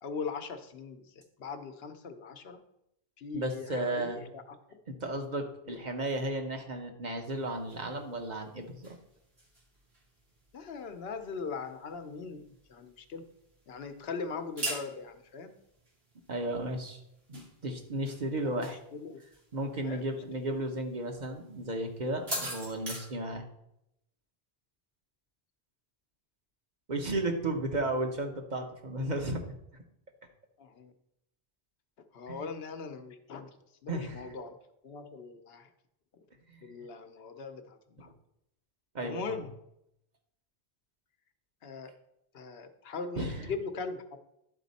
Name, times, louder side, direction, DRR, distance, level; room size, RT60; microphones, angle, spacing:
voice 1, 0.0-2.6 3.2-4.8 5.7-5.8 10.5-13.3 13.7-15.6 18.4-19.2 19.8-20.2 30.6-30.9 32.1-33.6 33.8-34.6 34.8-35.7 36.6-38.1 39.0-39.5 41.6-41.9 42.3-44.0, left 5 dB, 75° left, 8 dB, 1.0 m, -40 dB
voice 2, 3.3-4.2 4.9-9.0 16.3-17.0 17.3-18.8 19.5-23.4 26.9-29.4 29.7-29.8 32.3-32.4 33.9-34.3 36.5-36.7 38.0-38.1 38.9-39.4 43.2-43.5, right 1 dB, 50° right, 4 dB, 1.0 m, -34 dB
sound 1, 7.3-23.0, right 1 dB, 80° right, 2.7 m, -45 dB
11.0 x 4.1 x 4.1 m, 0.81 s
omnidirectional pair, 1.0 m